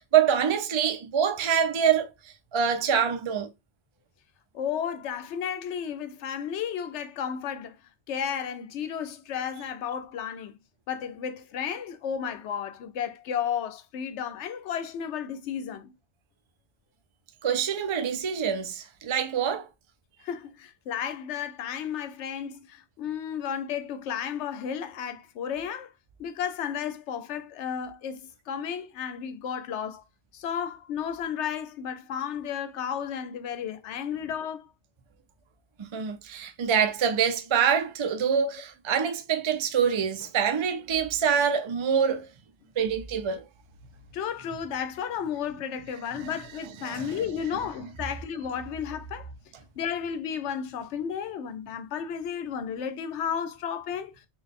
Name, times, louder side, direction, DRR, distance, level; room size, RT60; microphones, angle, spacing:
voice 1, 0.0-2.1 2.5-3.5 17.4-19.7 35.8-42.3 42.8-43.4 46.2-46.3 46.8-47.1, right 7 dB, 40° right, 0.4 m, -25 dB
voice 2, 4.5-7.8 8.1-10.5 10.9-15.9 20.2-25.9 26.2-30.0 30.3-34.7 44.1-49.3 49.8-54.1, left 8 dB, 75° left, 0.9 m, -33 dB
3.8 x 2.4 x 3.6 m
omnidirectional pair, 1.2 m